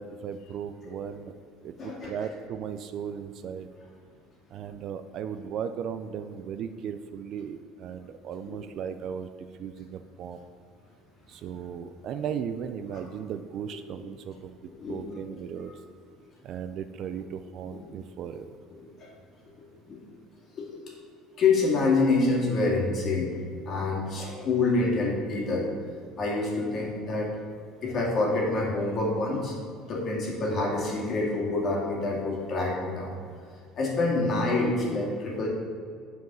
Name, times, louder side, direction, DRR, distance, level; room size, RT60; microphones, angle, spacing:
voice 1, 0.0-1.3 1.6-3.7 4.5-9.3 9.6-10.4 11.3-15.8 16.4-18.6, right 7 dB, 45° right, 9 dB, 0.4 m, -36 dB
voice 2, 1.8-2.1 14.8-15.1 17.7-17.9 19.0-19.1 19.9-20.0 20.5-20.7 21.4-23.4 23.7-25.7 26.2-27.3 27.8-29.5 29.8-33.1 33.7-35.5, left 3 dB, 30° left, -2 dB, 2.1 m, -26 dB
9.4 x 4.7 x 6.1 m, 2.3 s
cardioid pair, 160°, 0 cm